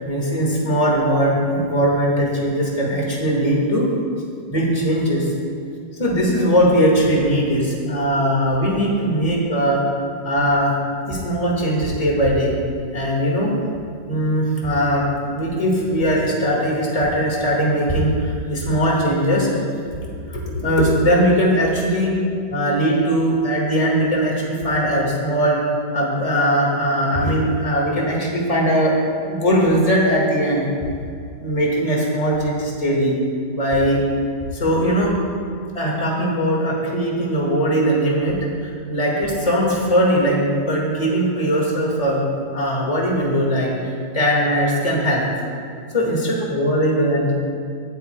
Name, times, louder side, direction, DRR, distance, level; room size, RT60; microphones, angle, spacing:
voice 1, 0.0-3.9 4.5-5.3 6.0-9.8 10.2-10.7 11.1-12.6 12.9-13.5 14.1-19.5 20.3-22.1 22.5-25.6 25.9-28.9 29.3-30.7 31.4-33.2 33.5-34.0 34.5-35.2 35.7-42.3 42.5-45.2 45.9-47.3, equal, 20° left, -3 dB, 1.9 m, -20 dB
18.5 x 9.4 x 2.3 m, 2.4 s
omnidirectional pair, 1.9 m